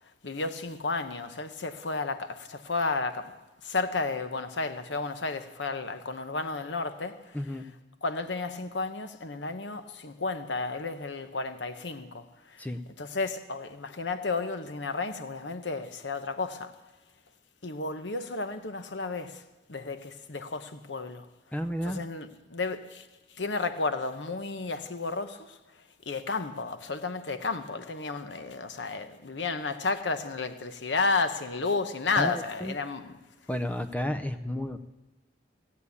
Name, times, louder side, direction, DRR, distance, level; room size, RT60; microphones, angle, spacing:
voice 1, 0.2-3.3 3.6-7.6 8.0-12.7 13.0-16.7 17.6-21.3 21.8-33.2, left 3 dB, 75° left, 1.0 m, -32 dB
voice 2, 7.3-7.7 12.6-12.8 21.5-22.0 32.2-32.7 33.5-34.8, left 1 dB, 10° left, 0.5 m, -32 dB
17.0 x 8.5 x 8.4 m
head